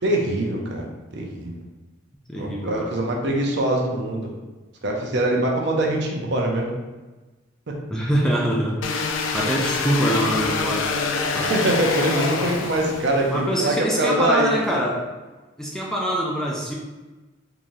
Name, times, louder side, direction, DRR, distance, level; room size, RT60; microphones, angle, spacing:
voice 1, 0.0-0.9 1.1-1.5 2.4-4.3 4.8-6.7 11.5-14.6, right 1 dB, 60° right, 0 dB, 0.6 m, -23 dB
voice 2, 2.3-2.9 7.9-8.8 9.3-10.8 11.3-11.5 13.3-15.1 15.6-16.7, equal, 5° left, -3 dB, 0.4 m, -24 dB
sound 1, 8.8-13.4, left 4 dB, 85° left, 0.4 m, -25 dB
3.7 x 2.7 x 3.1 m, 1.2 s
head